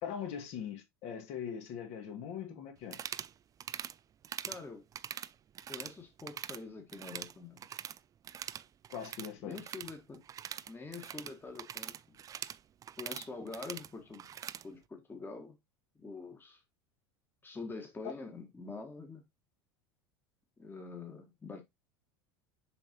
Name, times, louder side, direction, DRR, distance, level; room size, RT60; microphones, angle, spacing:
voice 1, 0.0-3.0 8.9-9.6 18.0-18.1, left 8 dB, 50° left, 2.2 m, -41 dB
sound 1, 2.8-3.3 3.6-3.9 4.2-4.6 4.9-5.9 6.2-6.6 6.9-8.0 8.2-14.6, right 9 dB, 25° right, 0.4 m, -43 dB
voice 2, 4.5-4.8 5.7-7.6 9.4-10.2 10.7-12.2 13.0-14.3 14.5-15.6 16.0-16.6 17.4-19.2 20.6-21.6, left 3 dB, 15° left, 1.7 m, -45 dB
7.0 x 5.4 x 3.0 m
figure-of-eight pair, 80°, 14 cm